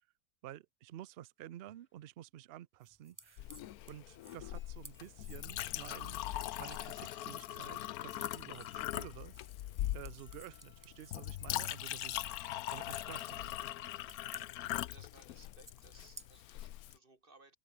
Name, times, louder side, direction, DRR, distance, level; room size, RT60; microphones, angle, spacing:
voice 1, 0.4-3.5 3.9-6.2 6.6-9.4 9.9-12.4 12.7-13.6, right 13 dB, 70° right, 0.5 m, -51 dB
sound 1, 1.1-1.2 1.5-2.3 3.6-3.7 4.2-14.2, left 1 dB, 5° left, 2.8 m, -70 dB
sound 2, 2.8-16.6, right 1 dB, 10° right, 1.7 m, -59 dB
Chink clink, 3.4-17.0, left 14 dB, 70° left, 1.1 m, -41 dB
voice 2, 14.9-17.6, right 3 dB, 35° right, 2.8 m, -62 dB
omnidirectional pair, 1.7 m